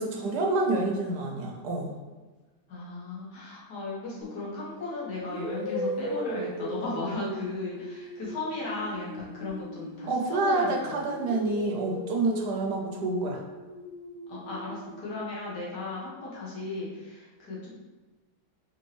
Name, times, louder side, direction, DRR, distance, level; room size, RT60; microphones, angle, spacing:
voice 1, 0.0-1.9 10.0-13.4, right 2 dB, 75° right, 1 dB, 1.2 m, -28 dB
voice 2, 2.7-11.0 14.3-17.7, left 3 dB, 75° left, -5 dB, 1.7 m, -36 dB
sound 1, 4.2-4.5 5.3-10.6 11.0-15.0, equal, 55° left, 1.0 m, -38 dB
4.3 x 2.9 x 3.1 m, 1.2 s
omnidirectional pair, 1.9 m